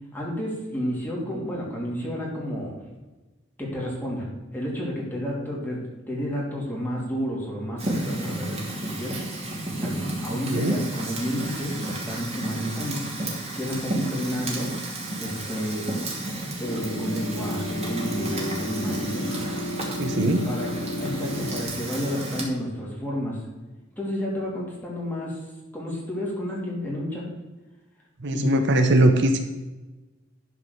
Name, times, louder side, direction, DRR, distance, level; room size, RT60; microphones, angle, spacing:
voice 1, 0.1-2.7 3.6-9.2 9.7-13.0 13.6-14.7 15.2-15.9 16.6-19.3 20.0-20.7 21.0-23.4 24.0-25.5 25.7-27.3 28.3-28.6, equal, 10° left, -4 dB, 2.9 m, -31 dB
Fire, 7.8-22.4, right 2 dB, 35° right, 2.4 m, -32 dB
sound 1, 16.6-21.6, left 1 dB, 60° left, 1.0 m, -32 dB
voice 2, 20.0-20.4 28.2-29.4, right 1 dB, 60° right, 6 dB, 0.9 m, -20 dB
11.5 x 4.8 x 6.5 m, 1.2 s
head